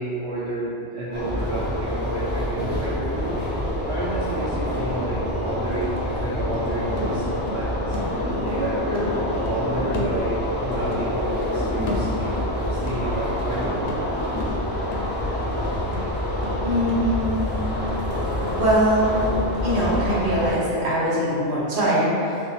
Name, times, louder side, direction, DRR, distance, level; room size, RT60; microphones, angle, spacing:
voice 1, 0.0-3.4 3.9-8.0 8.4-12.3 12.7-14.2, right 1 dB, 70° right, -10 dB, 0.9 m, -30 dB
sound 1, 1.1-20.5, left 1 dB, 20° right, 0.3 m, -26 dB
sound 2, 5.5-8.6 8.9-10.7 10.9-12.5 12.9-18.5 18.9-19.0, left 3 dB, 65° left, 0.7 m, -36 dB
voice 2, 16.6-17.6 18.4-19.2 19.6-22.4, equal, 50° right, -8 dB, 1.0 m, -22 dB
2.6 x 2.4 x 3.9 m, 2.6 s
omnidirectional pair, 1.2 m